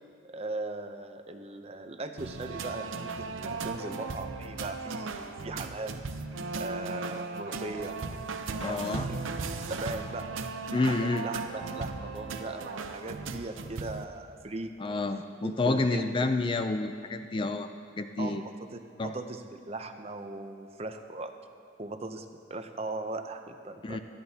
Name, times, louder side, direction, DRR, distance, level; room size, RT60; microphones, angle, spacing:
voice 1, 0.2-6.0 6.6-8.0 8.6-9.2 9.7-10.3 10.8-14.7 15.4-16.0 18.2-18.7 19.0-21.3 21.8-24.0, right 2 dB, 30° right, 7 dB, 0.6 m, -39 dB
sound 1, 2.2-14.0, right 4 dB, 80° right, 0.6 m, -37 dB
voice 2, 8.6-9.1 10.7-11.3 14.8-17.7 18.0-18.4 19.0-19.1 23.8-24.0, left 2 dB, 25° left, 8 dB, 0.4 m, -29 dB
18.5 x 13.0 x 2.8 m, 2.3 s
head